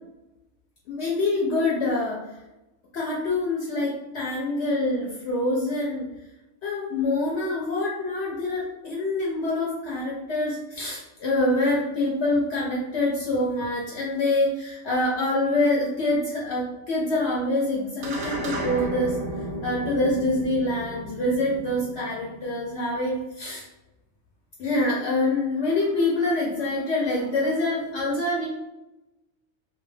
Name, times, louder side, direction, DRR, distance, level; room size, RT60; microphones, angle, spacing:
voice 1, 0.9-2.2 2.9-6.1 6.6-19.2 19.6-23.6 24.6-28.5, left 2 dB, 70° left, -3 dB, 0.8 m, -25 dB
sound 1, 18.0-22.7, equal, 55° right, 0.7 m, -33 dB
2.3 x 2.2 x 3.1 m, 0.98 s
omnidirectional pair, 1.2 m